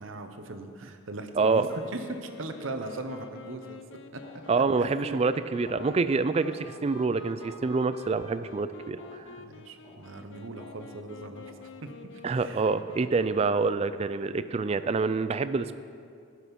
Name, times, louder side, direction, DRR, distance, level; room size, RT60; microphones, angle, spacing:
voice 1, 0.0-3.8 4.3-4.4 4.8-5.2 9.4-12.7, right 2 dB, 70° right, 7 dB, 0.8 m, -39 dB
Wind instrument woodwind instrument, 1.4-13.8, left 3 dB, 60° left, 0.5 m, -48 dB
sound 1, 3.5-3.6 4.2-4.5 5.0-5.2 5.6-5.9 6.4-6.7 7.4-7.6 8.2-8.4 9.0-9.2 9.8-10.1 10.6-10.8 11.4-11.6 12.3-12.5, equal, 25° left, 3.2 m, -51 dB
voice 2, 4.5-9.2 12.2-15.7, right 4 dB, 30° right, 13 dB, 0.3 m, -26 dB
15.5 x 6.3 x 5.3 m, 2.3 s
head